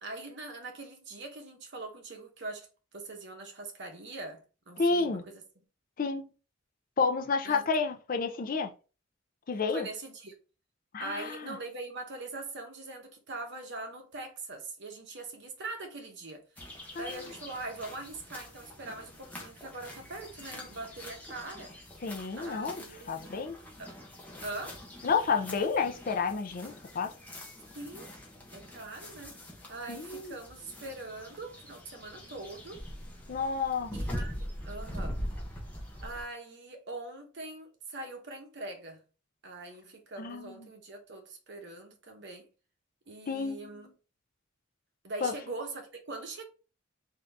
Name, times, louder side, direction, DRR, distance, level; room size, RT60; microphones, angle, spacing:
voice 1, 0.0-5.4 7.4-7.6 9.7-10.3 11.0-16.4 17.0-21.7 22.4-23.4 23.8-23.9 24.4-24.8 27.7-28.1 28.5-29.3 29.7-32.8 33.9-35.2 36.0-39.0 39.4-42.5 43.1-43.9 45.0-46.4, right 2 dB, 60° right, 1.0 m, -42 dB
voice 2, 4.8-5.2 6.0-6.3 7.0-8.7 9.5-9.9 10.9-11.6 17.0-17.1 22.0-23.6 25.0-27.1 29.9-30.3 33.3-33.9 40.2-40.7 43.3-43.9 45.2-45.3, left 4 dB, 45° left, 0.5 m, -30 dB
sound 1, 16.6-36.2, equal, 10° left, 1.0 m, -43 dB
3.8 x 2.7 x 3.4 m
head